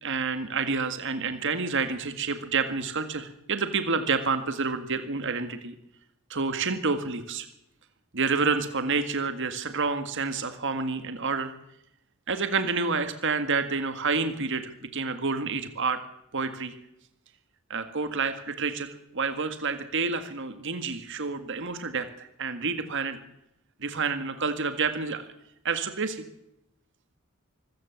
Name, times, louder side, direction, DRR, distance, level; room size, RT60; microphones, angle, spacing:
voice 1, 0.0-5.7 6.3-7.5 8.1-11.5 12.3-16.0 16.3-16.7 17.7-23.2 23.8-25.2 25.6-26.2, right 4 dB, 60° right, 9 dB, 1.8 m, -29 dB
24.5 x 15.5 x 7.2 m, 0.81 s
head